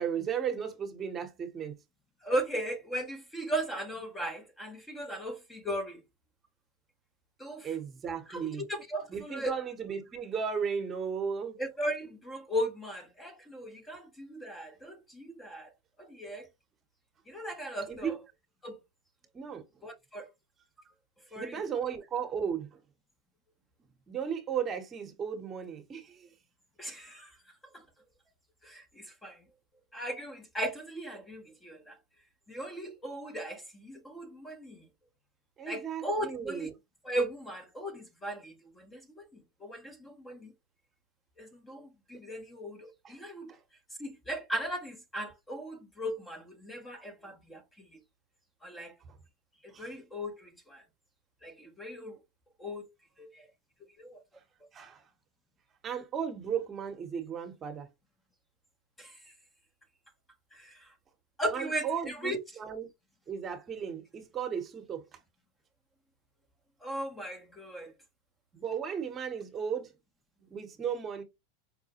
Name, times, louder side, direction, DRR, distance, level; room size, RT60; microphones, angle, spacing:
voice 1, 0.0-1.8 7.6-8.6 9.1-11.6 17.9-18.2 19.3-19.6 21.4-22.7 24.1-26.3 35.6-36.7 43.0-43.2 43.5-43.6 49.7-49.9 54.7-55.0 55.8-57.9 61.5-62.9 63.3-65.0 68.5-69.9 70.5-71.2, right 7 dB, 30° right, 0.9 m, -35 dB
voice 2, 2.2-6.0 7.4-7.7 8.3-9.5 11.6-15.7 16.0-16.5 17.3-18.2 18.6-18.8 19.8-20.3 21.3-21.7 26.8-27.3 27.7-27.8 28.6-29.4 29.9-31.9 32.5-34.9 35.7-36.7 37.0-39.3 39.6-40.5 41.4-43.5 44.0-48.0 48.6-48.9 49.6-50.8 51.4-52.2 52.6-52.9 53.2-53.5 54.0-54.2 59.0-59.2 60.5-60.9 61.4-62.4 66.8-67.9, right 1 dB, 15° left, 0.8 m, -37 dB
4.8 x 2.1 x 2.8 m
hypercardioid pair, 100°, 0 cm